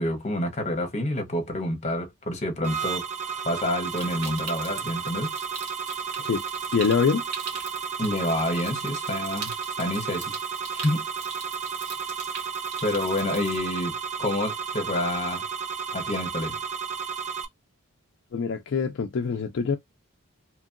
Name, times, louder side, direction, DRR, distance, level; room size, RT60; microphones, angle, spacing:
voice 1, 0.0-3.1 3.4-5.3 8.0-9.5 9.8-10.3 10.7-11.0 12.8-15.4 15.9-16.6, left 1 dB, 30° left, 0.8 m, -28 dB
sound 1, 2.6-17.4, right 6 dB, 30° right, 0.5 m, -33 dB
Stream, 3.9-13.6, right 5 dB, 90° right, 1.2 m, -42 dB
voice 2, 6.7-7.3 18.3-19.8, left 5 dB, 55° left, 0.4 m, -24 dB
2.9 x 2.7 x 2.4 m
head